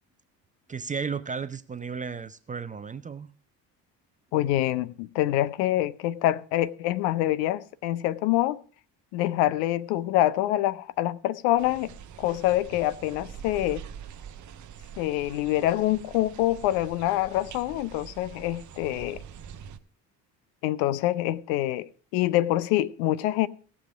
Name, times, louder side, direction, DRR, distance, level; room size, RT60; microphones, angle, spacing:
voice 1, 0.7-3.3, right 5 dB, 15° right, 0.6 m, -34 dB
voice 2, 4.3-8.6 9.1-11.9 12.2-13.8 15.0-19.2 20.6-23.5, left 14 dB, 55° left, 0.8 m, -26 dB
sound 1, 11.6-19.8, right 8 dB, 35° right, 0.9 m, -44 dB
17.0 x 7.2 x 4.9 m
figure-of-eight pair, 50°, 49 cm